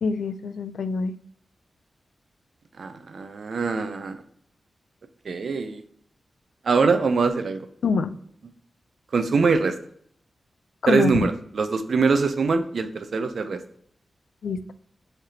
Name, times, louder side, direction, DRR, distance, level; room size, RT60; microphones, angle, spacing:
voice 1, 0.0-1.2 7.8-8.1 10.8-11.3 14.4-14.7, left 4 dB, 90° left, 13 dB, 0.3 m, -25 dB
voice 2, 2.8-4.2 5.3-5.8 6.7-7.7 9.1-9.7 10.9-13.6, right 4 dB, 60° right, 9 dB, 0.4 m, -23 dB
5.8 x 3.3 x 2.8 m, 0.65 s
wide cardioid pair, 165°, 0 cm